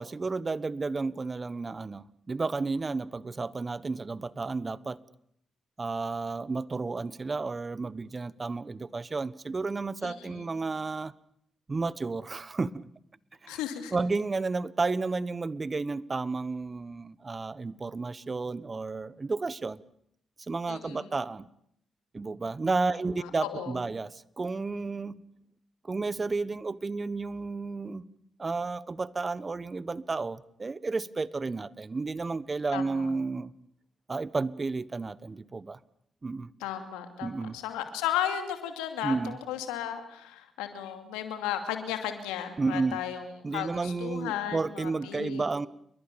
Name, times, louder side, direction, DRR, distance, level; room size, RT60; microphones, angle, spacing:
voice 1, 0.0-5.0 5.8-11.1 11.7-12.8 13.4-13.6 13.9-19.8 20.4-21.5 22.1-25.2 25.8-28.0 28.4-33.5 34.1-35.8 36.2-36.5 37.2-37.6 39.0-39.4 42.6-43.0 43.4-45.7, right 3 dB, 35° right, 18 dB, 1.3 m, -32 dB
voice 2, 10.0-10.4 13.5-14.0 20.7-21.1 23.2-23.8 32.7-33.1 36.6-45.5, left 10 dB, 85° left, 7 dB, 2.6 m, -35 dB
29.5 x 22.5 x 7.1 m, 0.72 s
hypercardioid pair, 45°, 0 cm